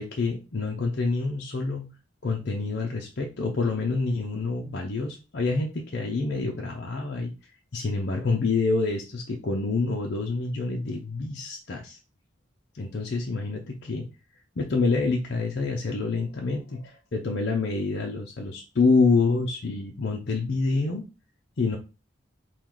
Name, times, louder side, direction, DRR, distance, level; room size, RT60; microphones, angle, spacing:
voice 1, 0.0-1.9 2.2-7.3 7.7-12.0 12.7-14.1 14.6-21.0 21.6-21.8, left 3 dB, 55° left, 0 dB, 0.6 m, -27 dB
4.5 x 2.3 x 3.7 m, 0.30 s
head